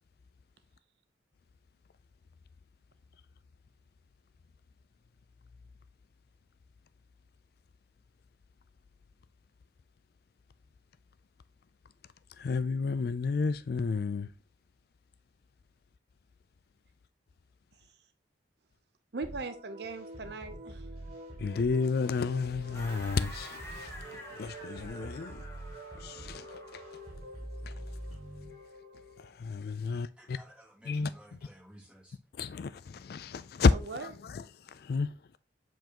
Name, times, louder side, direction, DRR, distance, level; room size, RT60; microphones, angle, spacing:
voice 1, 12.4-14.3 21.4-25.4 26.0-26.8 27.6-27.7 29.2-30.4 30.9-31.1 32.4-33.7 34.0-35.1, left 4 dB, 55° left, 0.3 m, -31 dB
voice 2, 19.1-20.9 33.7-34.1, right 3 dB, 60° right, 0.6 m, -39 dB
sound 1, 19.2-29.3, right 1 dB, 35° right, 3.5 m, -45 dB
sound 2, 22.7-27.1, equal, 15° left, 2.0 m, -48 dB
voice 3, 29.9-32.2, equal, 5° right, 3.0 m, -56 dB
7.9 x 4.6 x 2.9 m
head